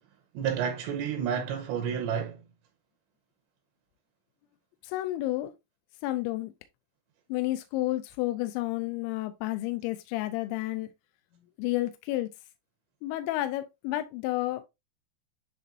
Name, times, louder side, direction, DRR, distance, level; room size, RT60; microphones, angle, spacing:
voice 1, 0.3-2.4, right 8 dB, 75° right, 2.9 m, -30 dB
voice 2, 4.8-5.5 6.0-6.5 7.3-10.9 11.6-12.3 13.0-14.6, left 17 dB, 85° left, 2.8 m, -31 dB
10.0 x 4.2 x 2.5 m
omnidirectional pair, 5.5 m